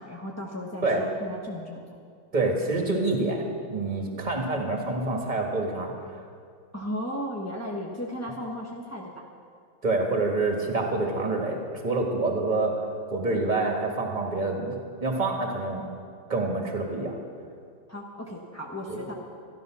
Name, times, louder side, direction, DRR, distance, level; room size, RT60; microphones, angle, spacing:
voice 1, 0.0-1.8 6.7-9.3 17.9-19.1, equal, 15° left, -3 dB, 0.5 m, -35 dB
voice 2, 2.3-5.9 9.8-12.8 13.1-15.8 16.3-17.1 18.9-19.0, right 2 dB, 20° right, 1 dB, 1.7 m, -27 dB
13.5 x 12.5 x 6.1 m, 2.3 s
omnidirectional pair, 2.3 m